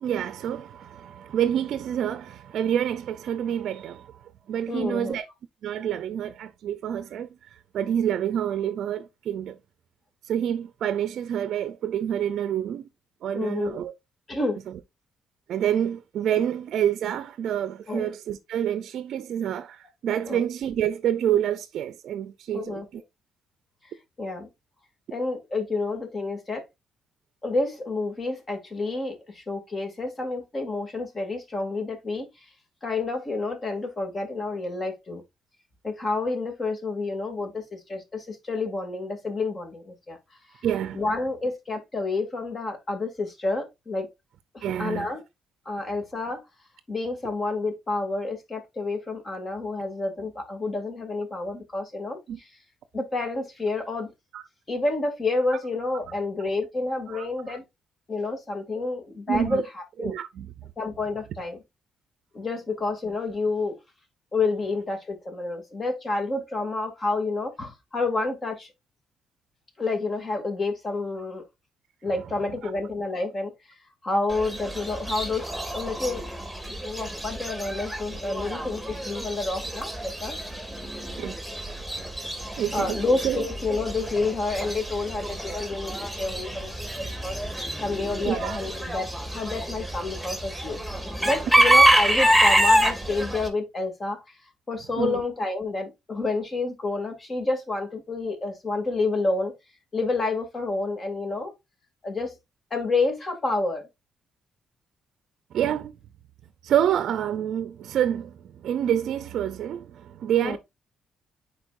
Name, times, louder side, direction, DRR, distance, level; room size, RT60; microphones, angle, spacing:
voice 1, 0.0-4.2 4.5-5.3 5.6-7.3 7.7-9.6 10.2-12.8 13.2-13.9 14.7-14.8 15.5-23.0 40.6-41.0 44.6-45.1 52.3-52.4 54.3-54.4 57.1-57.6 59.3-59.6 60.0-60.5 72.6-72.7 81.2-81.4 82.6-83.5 86.5-86.6 87.0-87.1 88.2-88.7 95.0-95.2 105.5-106.0 106.6-110.6, right 10 dB, 70° right, 0.5 m, -27 dB
voice 2, 4.7-5.2 13.3-13.8 14.3-14.6 17.9-18.1 20.3-20.4 22.5-22.9 24.2-24.5 25.1-26.6 27.4-32.3 32.8-35.2 35.8-40.2 40.9-44.1 44.5-45.2 45.7-46.4 46.9-52.2 52.9-54.1 54.7-57.6 58.1-59.6 60.0-60.1 60.8-61.6 62.3-63.8 64.3-68.7 69.8-71.4 72.0-73.5 74.0-75.5 75.7-76.2 76.8-80.4 82.7-85.9 86.2-87.4 87.8-90.8 91.2-94.2 94.7-99.5 99.9-101.5 102.0-102.3 102.7-103.8 110.4-110.6, left 3 dB, 35° left, 2.6 m, -29 dB
Chicken rooster / Bird, 74.3-93.5, right 1 dB, ahead, 2.3 m, -26 dB
9.7 x 4.4 x 2.6 m
cardioid pair, 90°, 0 cm